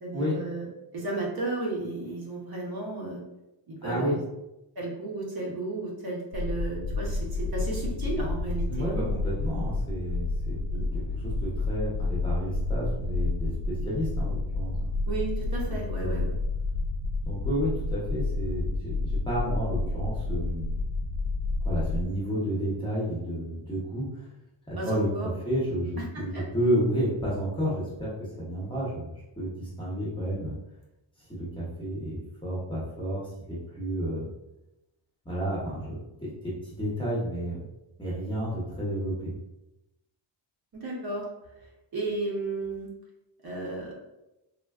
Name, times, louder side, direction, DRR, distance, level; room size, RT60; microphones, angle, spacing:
voice 1, 0.0-0.7 0.9-3.2 3.7-4.2 4.8-9.2 10.7-10.9 15.1-16.3 24.8-25.3 26.0-26.5 40.7-41.3 41.9-42.9 43.4-43.9, right 2 dB, 50° right, -3 dB, 0.7 m, -33 dB
voice 2, 3.8-4.2 8.7-10.6 10.9-14.9 15.7-16.3 17.3-20.8 21.6-24.3 24.7-30.5 31.3-34.3 35.2-37.6 38.0-39.1, equal, 10° left, -7 dB, 0.7 m, -31 dB
sound 1, 6.3-22.0, left 2 dB, 85° left, 0.5 m, -30 dB
3.4 x 2.2 x 2.3 m, 0.92 s
wide cardioid pair, 175°, 49 cm